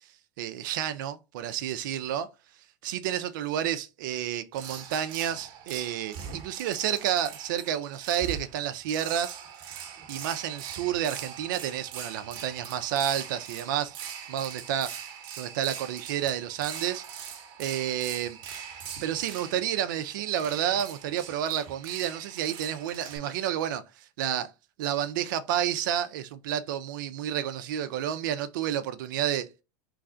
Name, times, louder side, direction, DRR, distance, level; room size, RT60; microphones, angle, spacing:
voice 1, 0.4-2.3 2.8-9.7 10.1-14.0 14.3-15.1 15.4-17.1 17.6-18.4 19.0-24.5 24.8-29.6, right 10 dB, 75° right, 0.4 m, -30 dB
sound 1, 4.5-23.2, right 8 dB, 50° right, 0.9 m, -42 dB
3.2 x 2.4 x 3.7 m
supercardioid pair, 120°, 10 cm